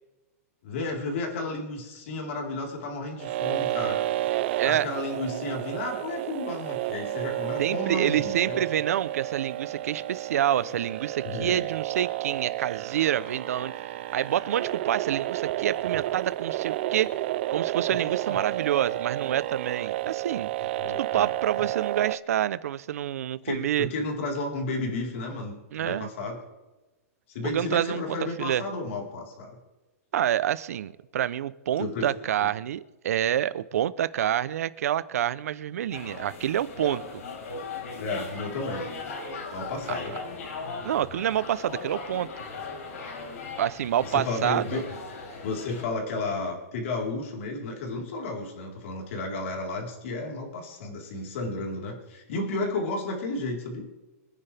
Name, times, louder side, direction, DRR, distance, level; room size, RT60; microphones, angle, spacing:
voice 1, 0.6-4.0 4.6-8.6 11.2-11.6 17.9-18.4 20.8-21.3 23.4-26.4 27.3-29.5 31.8-32.0 38.0-38.8 39.5-40.1 44.0-44.8 45.4-53.9, left 2 dB, 55° left, 0 dB, 4.3 m, -32 dB
sound 1, 3.2-22.2, right 15 dB, 45° right, 0.4 m, -31 dB
voice 2, 7.6-13.7 14.1-17.1 17.5-20.5 21.0-23.9 25.7-26.1 27.5-28.6 30.1-37.2 39.9-40.0 40.8-42.3 43.6-44.8, right 11 dB, 70° right, 16 dB, 0.8 m, -27 dB
sound 2, 35.9-45.8, left 4 dB, 75° left, 5.1 m, -38 dB
25.5 x 10.0 x 3.5 m, 1.1 s
hypercardioid pair, 160°, 8 cm